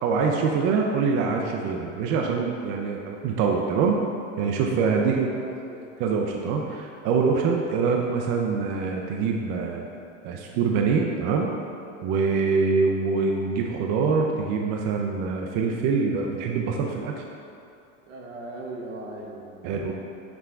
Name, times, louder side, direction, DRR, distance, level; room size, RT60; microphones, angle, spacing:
voice 1, 0.0-4.0 4.4-5.4 6.0-9.9 10.2-11.5 12.0-17.1 19.6-19.9, right 5 dB, 50° right, 0 dB, 0.5 m, -24 dB
voice 2, 4.8-5.1 5.3-5.8 18.1-19.9, right 2 dB, 75° right, -1 dB, 0.8 m, -39 dB
5.9 x 2.2 x 3.6 m, 2.5 s
hypercardioid pair, 85°, 38 cm